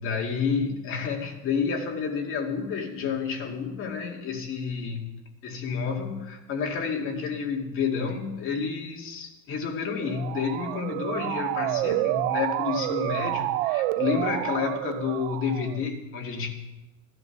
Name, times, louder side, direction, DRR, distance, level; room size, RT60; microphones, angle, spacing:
voice 1, 0.0-5.0 5.4-16.5, left 6 dB, 30° left, 1 dB, 2.2 m, -30 dB
Motor vehicle (road) / Siren, 10.0-15.8, right 17 dB, 60° right, 0.5 m, -29 dB
14.5 x 12.5 x 5.9 m, 1.1 s
cardioid pair, 170°, 43 cm